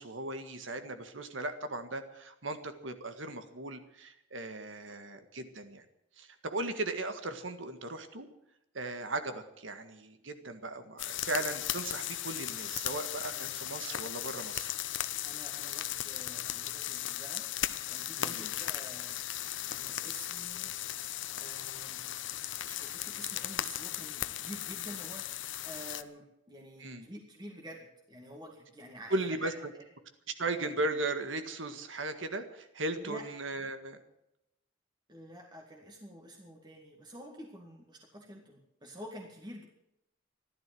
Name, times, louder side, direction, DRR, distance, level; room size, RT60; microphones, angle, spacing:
voice 1, 0.0-5.9 6.2-8.3 8.7-14.7 18.2-18.5 26.8-27.1 29.1-29.5 30.4-34.0, right 2 dB, 80° right, 8 dB, 1.8 m, -37 dB
sound 1, 11.0-26.0, left 12 dB, 70° left, 0.8 m, -37 dB
voice 2, 15.2-19.4 19.7-20.7 21.4-22.0 22.4-29.8 33.0-33.2 35.1-39.6, equal, 25° right, 0 dB, 2.2 m, -49 dB
14.5 x 12.0 x 7.8 m, 0.83 s
head